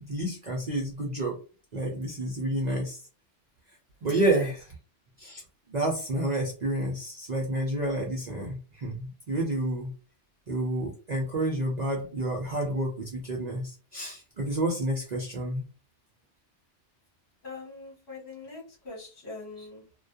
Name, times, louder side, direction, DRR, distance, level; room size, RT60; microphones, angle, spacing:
voice 1, 0.0-1.4 1.7-3.0 4.0-4.7 5.2-5.4 5.7-9.9 10.5-15.6 19.6-19.7, right 1 dB, 50° right, -1 dB, 0.5 m, -29 dB
voice 2, 4.0-4.5 17.4-19.8, left 3 dB, 60° left, -2 dB, 1.3 m, -41 dB
2.3 x 2.2 x 2.6 m, 0.36 s
omnidirectional pair, 1.3 m